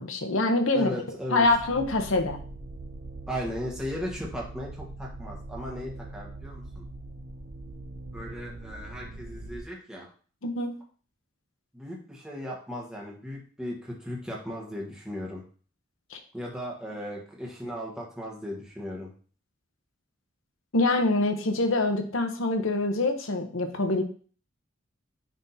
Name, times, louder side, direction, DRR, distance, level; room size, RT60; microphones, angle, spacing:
voice 1, 0.0-1.0 1.3-2.4 10.4-10.7 16.1-16.2 20.7-24.0, left 2 dB, 80° left, 6 dB, 0.9 m, -25 dB
voice 2, 0.7-1.5 3.3-6.8 8.1-10.1 11.7-15.4 16.3-19.1, equal, 5° right, -3 dB, 1.3 m, -36 dB
sound 1, 1.4-9.6, right 2 dB, 45° right, 0.6 m, -42 dB
9.5 x 3.6 x 2.8 m, 0.42 s
head